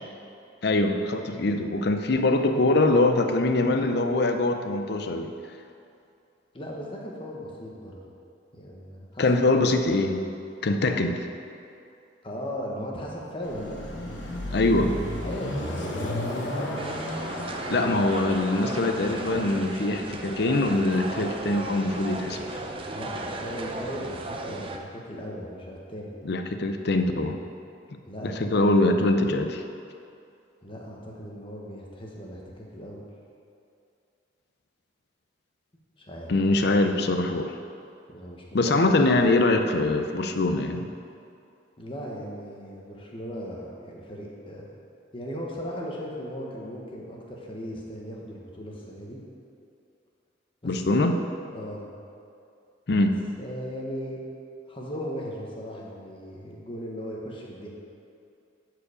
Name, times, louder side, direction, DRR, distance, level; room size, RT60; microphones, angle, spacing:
voice 1, 0.6-5.3 9.2-10.2 10.6-11.2 14.5-15.0 17.7-22.6 26.2-27.4 28.2-29.6 36.3-37.5 38.5-40.9 50.6-51.1 52.9-53.2, left 2 dB, 60° left, 6 dB, 0.6 m, -23 dB
voice 2, 6.5-8.0 8.5-9.5 12.2-13.8 15.2-16.7 22.9-26.2 28.0-28.5 30.6-33.0 36.0-36.3 38.1-39.0 41.8-44.7 45.1-49.2 50.6-51.2 51.5-51.9 53.0-53.1 53.4-54.2 54.7-57.7, equal, 30° left, -2 dB, 1.3 m, -37 dB
Car passing by / Accelerating revving vroom, 13.4-19.5, left 1 dB, 75° left, 1.3 m, -33 dB
sound 1, 16.8-24.8, right 2 dB, 30° right, 0.5 m, -35 dB
11.5 x 4.9 x 5.0 m, 2.5 s
head